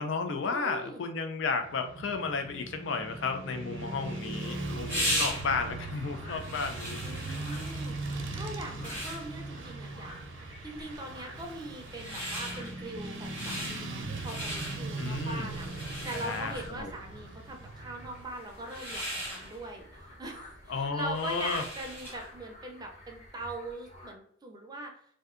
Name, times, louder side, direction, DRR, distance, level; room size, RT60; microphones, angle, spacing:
voice 1, 0.0-7.4 15.0-15.5 16.1-16.9 20.7-21.6, left 4 dB, 65° left, 6 dB, 0.4 m, -33 dB
voice 2, 0.5-1.0 7.0-10.1 10.6-24.9, right 2 dB, 20° right, 2 dB, 0.5 m, -42 dB
Motorcycle / Traffic noise roadway noise, 1.6-18.2, right 2 dB, 75° right, 0.6 m, -40 dB
sound 1, 3.8-22.4, equal, 10° left, 1.0 m, -39 dB
sound 2, 5.1-24.1, left 1 dB, 35° left, 0.8 m, -52 dB
2.6 x 2.2 x 3.6 m, 0.64 s
head